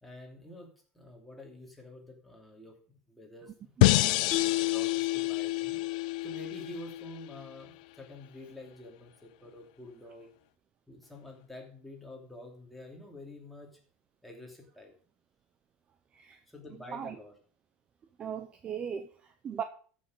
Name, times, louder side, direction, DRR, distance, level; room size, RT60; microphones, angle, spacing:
voice 1, 0.0-3.7 4.4-5.8 6.2-10.3 10.9-13.7 14.2-14.9 16.5-17.3, left 1 dB, ahead, 2.8 m, -48 dB
sound 1, 3.8-6.9, left 19 dB, 75° left, 0.5 m, -28 dB
Mallet percussion, 4.3-7.6, left 20 dB, 30° left, 0.9 m, -32 dB
voice 2, 18.2-19.6, right 8 dB, 25° right, 0.7 m, -38 dB
14.0 x 6.5 x 5.5 m
cardioid pair, 160°, 4 cm